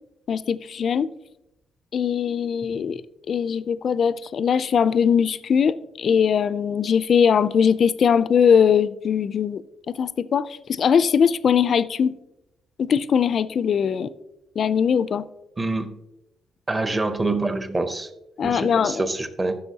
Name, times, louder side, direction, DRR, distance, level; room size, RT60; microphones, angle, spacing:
voice 1, 0.3-1.1 1.9-3.0 3.3-9.6 10.0-12.1 12.8-14.1 14.6-15.2 18.4-19.0, left 7 dB, 45° left, 0.3 m, -21 dB
voice 2, 15.6-15.9 16.7-18.1 18.4-19.6, right 2 dB, 15° right, 0.6 m, -26 dB
12.5 x 6.6 x 2.8 m
cardioid pair, 155°, 0 cm